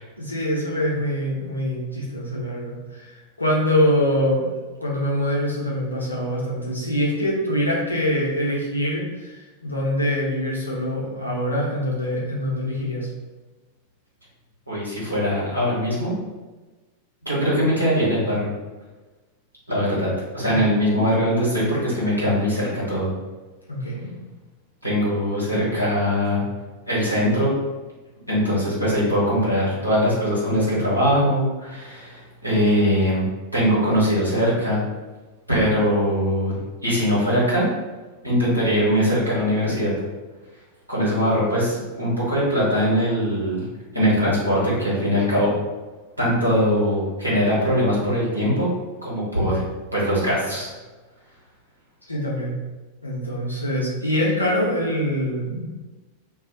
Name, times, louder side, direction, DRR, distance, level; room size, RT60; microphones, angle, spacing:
voice 1, 0.2-3.1 3.4-4.5 4.8-13.1 20.5-20.7 23.7-24.1 52.1-52.5 53.0-55.6, equal, 85° left, -4 dB, 0.8 m, -24 dB
voice 2, 14.7-16.1 17.2-18.5 19.7-23.1 24.8-26.4 26.9-27.5 28.3-33.3 33.5-34.8 35.5-36.6 36.8-37.7 38.2-39.9 40.9-43.6 43.9-45.5 46.2-48.7 49.0-49.6 49.9-50.7, equal, 90° right, -7 dB, 1.2 m, -21 dB
2.4 x 2.4 x 3.9 m, 1.2 s
figure-of-eight pair, 90°, 0 cm